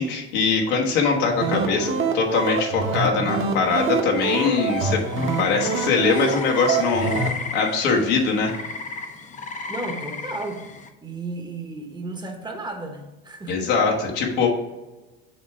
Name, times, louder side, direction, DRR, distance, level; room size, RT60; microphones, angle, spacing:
voice 1, 0.0-7.2 7.5-8.5 13.5-14.5, left 4 dB, 75° left, 0 dB, 1.4 m, -22 dB
sound 1, 1.2-7.3, right 4 dB, 40° right, 1.1 m, -26 dB
sound 2, 4.2-10.9, left 4 dB, 25° left, 0.7 m, -35 dB
voice 2, 9.7-10.7 11.0-13.7, right 2 dB, 15° right, 4 dB, 1.0 m, -33 dB
6.5 x 3.4 x 4.6 m, 1.1 s
supercardioid pair, 85°, 31 cm